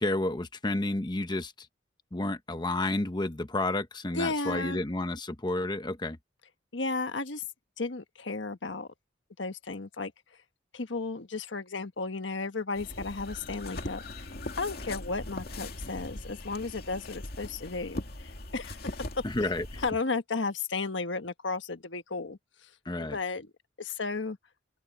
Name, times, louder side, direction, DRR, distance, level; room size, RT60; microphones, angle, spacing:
voice 1, 0.0-1.5 2.1-6.2 19.2-19.8 22.9-23.2, left 2 dB, 25° left, 0.9 m, -31 dB
voice 2, 4.1-4.8 6.7-7.4 7.8-8.9 9.4-10.1 10.7-14.3 14.6-19.0 19.4-19.5 19.8-22.4 23.0-23.5 23.8-24.4, left 3 dB, 80° left, 1.4 m, -34 dB
sound 1, 12.7-19.9, left 2 dB, 55° left, 2.5 m, -40 dB
open air
head